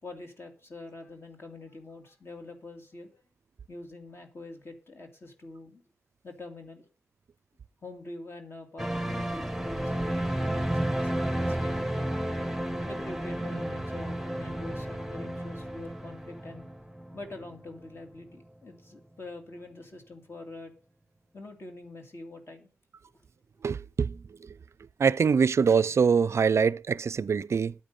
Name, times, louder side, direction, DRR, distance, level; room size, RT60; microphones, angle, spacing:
voice 1, 0.0-3.2 3.7-5.8 6.2-6.9 7.8-12.1 12.9-16.7 17.1-20.7 21.3-22.7, left 2 dB, 50° left, 2.5 m, -45 dB
sound 1, 8.8-18.0 18.2-18.4, right 1 dB, ahead, 1.0 m, -32 dB
voice 2, 23.6-24.5 25.0-27.7, right 6 dB, 60° right, 0.4 m, -24 dB
8.8 x 8.7 x 5.5 m
supercardioid pair, 40°, 5 cm